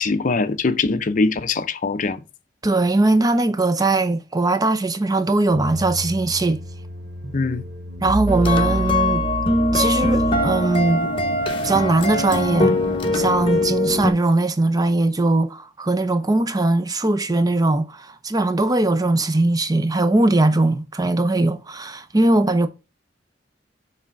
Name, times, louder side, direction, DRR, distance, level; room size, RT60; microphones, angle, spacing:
voice 1, 0.0-2.2 7.3-7.6, left 3 dB, 45° left, 0.6 m, -22 dB
voice 2, 2.6-6.6 7.2-7.4 8.0-9.2 9.7-11.1 11.6-12.8 13.1-22.7, right 2 dB, 20° right, 0.6 m, -20 dB
sound 1, 5.5-10.9, right 2 dB, 85° right, 2.1 m, -29 dB
sound 2, 8.3-14.1, left 1 dB, 30° left, 1.1 m, -21 dB
7.0 x 3.4 x 5.8 m
head